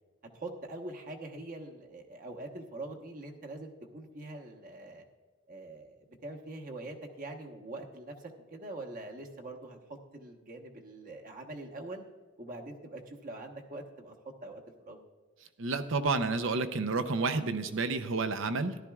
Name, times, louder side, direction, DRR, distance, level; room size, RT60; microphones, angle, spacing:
voice 1, 0.3-5.0 5.5-9.8 10.1-12.0 12.4-14.1 14.4-15.0, right 2 dB, 40° right, 2 dB, 1.2 m, -44 dB
voice 2, 15.6-18.8, right 3 dB, 65° right, 9 dB, 0.7 m, -30 dB
14.0 x 11.5 x 2.4 m, 1.3 s
head